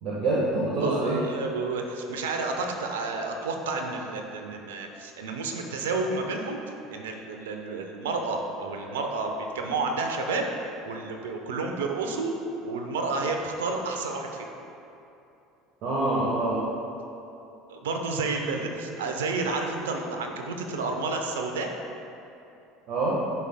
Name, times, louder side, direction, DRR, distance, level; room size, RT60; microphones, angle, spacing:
voice 1, 0.0-1.2 15.8-16.6 22.9-23.2, right 2 dB, 55° right, -6 dB, 1.3 m, -25 dB
voice 2, 0.8-6.6 6.9-10.5 10.8-12.3 12.6-14.5 17.7-21.7, right 3 dB, 80° right, 3 dB, 0.8 m, -30 dB
12.5 x 5.4 x 2.2 m, 2.8 s
hypercardioid pair, 70°, 0 cm